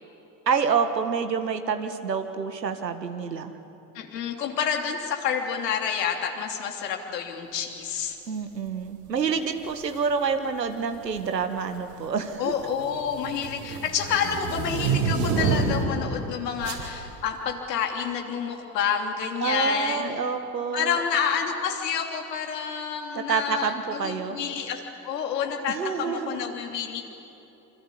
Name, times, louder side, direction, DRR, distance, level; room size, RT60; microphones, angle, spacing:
voice 1, 0.5-3.5 8.3-12.5 19.4-21.0 23.1-24.4 25.7-26.5, right 6 dB, 85° right, 7 dB, 1.9 m, -27 dB
voice 2, 3.9-8.2 12.4-20.2 20.7-27.0, left 7 dB, 75° left, 3 dB, 3.2 m, -29 dB
sound 1, 9.7-10.0 11.0-11.4 11.7-16.0 16.6-16.9, right 4 dB, 70° right, 5.2 m, -28 dB
27.0 x 25.5 x 8.5 m, 3.0 s
figure-of-eight pair, 65°, 49 cm